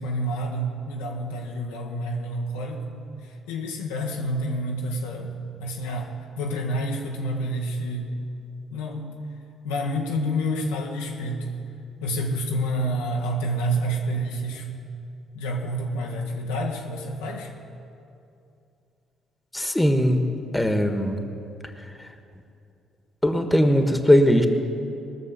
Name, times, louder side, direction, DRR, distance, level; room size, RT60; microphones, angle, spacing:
voice 1, 0.0-2.9 3.2-8.1 8.7-9.2 9.6-11.6 12.0-14.7 15.3-17.5, equal, 85° left, 0 dB, 1.2 m, -28 dB
voice 2, 19.5-20.2 20.5-21.3 21.8-22.1 23.2-24.5, equal, 10° left, 6 dB, 1.5 m, -20 dB
19.5 x 6.6 x 6.8 m, 2.6 s
hypercardioid pair, 50°, 0 cm